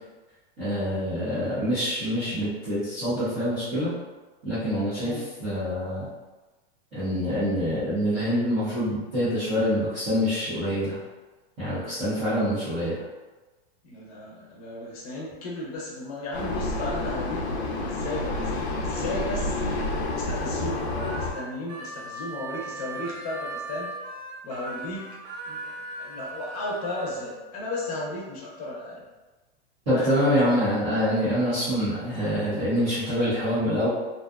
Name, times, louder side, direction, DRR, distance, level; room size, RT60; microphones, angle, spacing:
voice 1, 0.6-3.9 4.4-5.1 5.4-6.1 6.9-11.0 11.6-13.0 29.9-33.9, equal, 15° right, -15 dB, 0.3 m, -25 dB
voice 2, 13.8-17.4 17.8-19.6 20.1-23.9 24.4-25.1 25.4-29.0 29.9-30.4, left 2 dB, 35° left, -4 dB, 0.6 m, -35 dB
Vehicle, 16.3-21.3, left 2 dB, 85° left, 0.5 m, -29 dB
Harmonica, 20.7-27.2, right 2 dB, 60° right, 0.6 m, -38 dB
2.5 x 2.3 x 2.2 m, 1.2 s
supercardioid pair, 170°, 31 cm